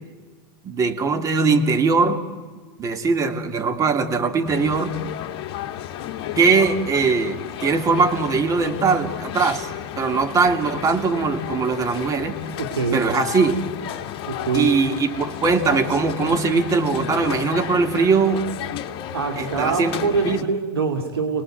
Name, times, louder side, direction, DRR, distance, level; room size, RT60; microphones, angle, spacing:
voice 1, 0.6-2.2 2.8-4.9 6.4-9.7 10.0-12.4 12.9-13.6 14.5-18.4 19.4-20.4, right 4 dB, 25° right, 6 dB, 2.6 m, -21 dB
sound 1, 4.5-20.4, left 11 dB, 45° left, 1.8 m, -32 dB
voice 2, 12.6-13.0 14.3-14.7 19.1-21.4, right 4 dB, 90° right, 4 dB, 2.7 m, -24 dB
29.0 x 19.0 x 9.2 m, 1.4 s
hypercardioid pair, 105°, 13 cm